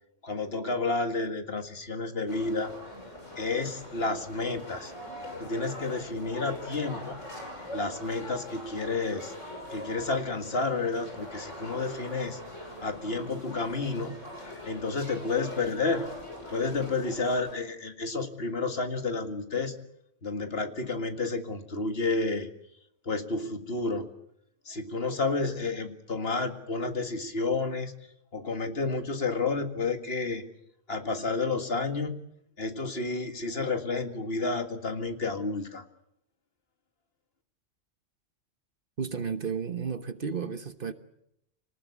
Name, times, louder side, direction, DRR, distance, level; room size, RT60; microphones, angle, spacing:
voice 1, 0.2-2.7 3.4-4.9 5.4-7.2 7.7-9.3 9.7-12.4 12.8-14.2 14.7-16.1 16.5-19.8 20.2-22.5 23.1-24.1 24.7-27.9 28.3-30.5 30.9-32.2 32.6-35.8, left 3 dB, 55° left, 2.1 m, -30 dB
sound 1, 2.3-17.5, left 1 dB, 80° left, 6.4 m, -42 dB
voice 2, 39.0-40.9, right 6 dB, 50° right, 1.2 m, -33 dB
26.0 x 19.5 x 8.3 m
omnidirectional pair, 1.3 m